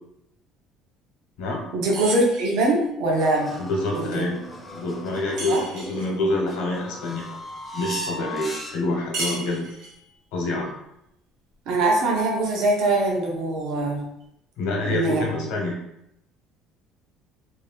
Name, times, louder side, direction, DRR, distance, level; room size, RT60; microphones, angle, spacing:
voice 1, 1.7-3.5 3.9-4.3 5.5-5.6 11.7-14.0 14.8-15.4, right 2 dB, 65° right, -2 dB, 0.7 m, -22 dB
sound 1, 1.9-2.8 5.4-6.2 9.1-10.1, right 2 dB, 80° right, 1.1 m, -34 dB
sound 2, 3.2-9.1, equal, 10° left, 0.4 m, -37 dB
voice 2, 3.6-4.4 4.7-7.4 7.7-9.7 10.3-10.7 14.6-15.8, left 2 dB, 85° left, 0 dB, 0.9 m, -27 dB
2.7 x 2.2 x 3.3 m, 0.80 s
cardioid pair, 165°, 0 cm